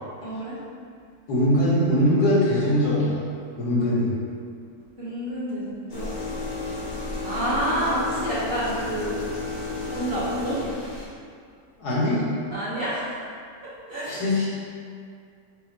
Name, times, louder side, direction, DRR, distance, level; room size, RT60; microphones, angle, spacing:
voice 1, 0.2-0.6 5.0-6.1 7.2-9.2 9.9-10.7 12.5-13.2 13.9-14.2, right 1 dB, 45° right, -8 dB, 1.0 m, -28 dB
voice 2, 1.3-3.2 3.6-4.1 11.8-12.2 14.1-14.5, left 1 dB, 80° left, -8 dB, 1.7 m, -21 dB
sound 1, 5.9-11.1, left 3 dB, 45° left, 1.0 m, -32 dB
5.4 x 2.0 x 4.4 m, 2.2 s
omnidirectional pair, 1.7 m